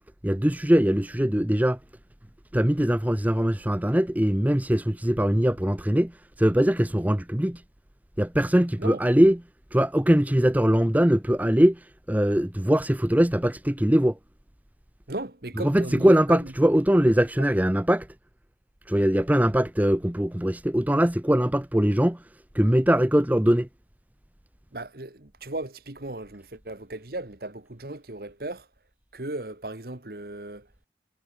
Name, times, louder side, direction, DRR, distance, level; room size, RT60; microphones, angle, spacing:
voice 1, 0.2-1.8 2.5-6.1 6.4-7.6 8.2-9.4 9.7-11.8 12.1-14.2 15.6-18.1 18.9-22.2 22.5-23.7, equal, 10° right, 0.7 m, -21 dB
voice 2, 15.1-16.5 24.7-28.7 29.1-30.7, right 2 dB, 55° right, 1.7 m, -36 dB
head